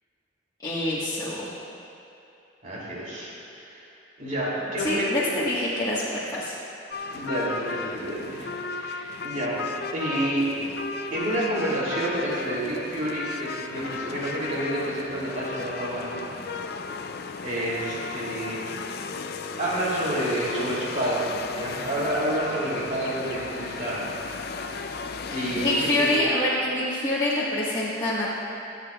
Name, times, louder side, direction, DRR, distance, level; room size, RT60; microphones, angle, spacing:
voice 1, 0.6-1.5 4.8-6.6 25.3-28.3, left 1 dB, 20° left, -10 dB, 1.4 m, -26 dB
voice 2, 2.6-3.3 3.6-3.8 4.2-5.1 7.1-9.6 9.9-10.5 11.1-16.2 17.4-18.7 19.6-24.2 24.5-24.8 25.3-26.2, right 1 dB, 45° right, -7 dB, 2.9 m, -29 dB
sound 1, 6.9-26.2, left 4 dB, 60° left, 0.5 m, -35 dB
25.0 x 8.4 x 2.4 m, 2.7 s
head